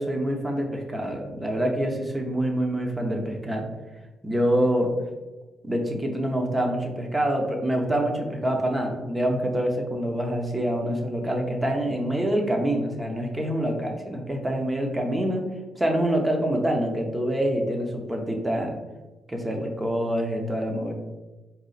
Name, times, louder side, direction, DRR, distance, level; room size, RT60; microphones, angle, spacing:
voice 1, 0.0-3.7 4.2-4.9 5.6-15.4 15.8-18.8 19.3-20.9, right 1 dB, 15° right, 2 dB, 0.7 m, -26 dB
4.1 x 2.4 x 3.9 m, 1.1 s
cardioid pair, 90°, 0 cm